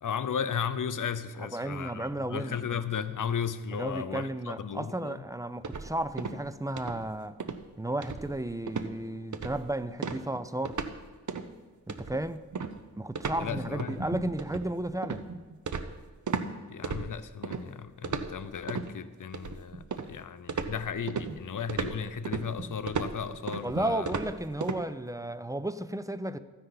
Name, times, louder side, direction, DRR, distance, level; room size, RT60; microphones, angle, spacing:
voice 1, 0.0-5.2 13.4-14.1 16.7-24.1, left 7 dB, 70° left, 0.6 m, -35 dB
voice 2, 1.4-2.8 3.7-7.4 7.8-10.8 11.9-12.5 13.0-15.3 23.6-26.4, right 1 dB, 10° right, 0.5 m, -33 dB
sound 1, 5.6-6.5 6.8-7.1 7.4-7.6 8.0-8.4 8.7-8.9 9.3-9.7 10.0-11.0 11.3-11.5 11.9-16.5 16.8-17.6 18.0-18.9 19.3-20.2 20.5-24.8, right 5 dB, 65° right, 0.8 m, -35 dB
14.0 x 10.0 x 4.0 m
wide cardioid pair, 60°, 32 cm